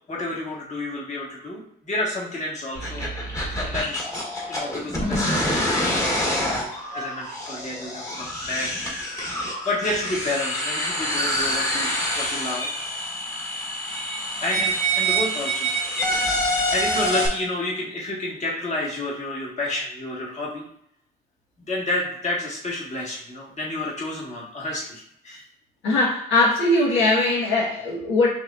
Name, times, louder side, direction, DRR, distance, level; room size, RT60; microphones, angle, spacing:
voice 1, 0.1-3.1 3.5-4.1 4.5-9.2 9.6-12.7 14.4-15.7 16.3-20.7 21.6-25.4, left 1 dB, 35° left, -4 dB, 1.5 m, -30 dB
sound 1, 2.7-17.3, equal, 15° left, 1.3 m, -26 dB
voice 2, 25.8-28.3, left 2 dB, 85° left, -5 dB, 1.4 m, -20 dB
6.0 x 2.9 x 2.5 m, 0.70 s
cardioid pair, 90°, 20 cm